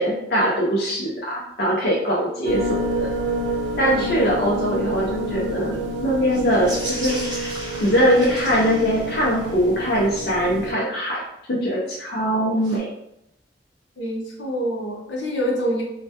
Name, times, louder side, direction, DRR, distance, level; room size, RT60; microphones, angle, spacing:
voice 1, 0.0-3.1 3.8-7.4 7.8-11.2 11.5-12.9, equal, 60° left, -5 dB, 0.4 m, -22 dB
sound 1, 2.4-10.7, right 1 dB, 85° right, 0.4 m, -28 dB
voice 2, 3.9-4.4 14.0-15.8, equal, 85° left, -3 dB, 0.7 m, -27 dB
sound 2, 6.3-9.8 12.6-12.8, right 1 dB, 25° right, 0.5 m, -35 dB
2.1 x 2.1 x 2.7 m, 0.80 s
head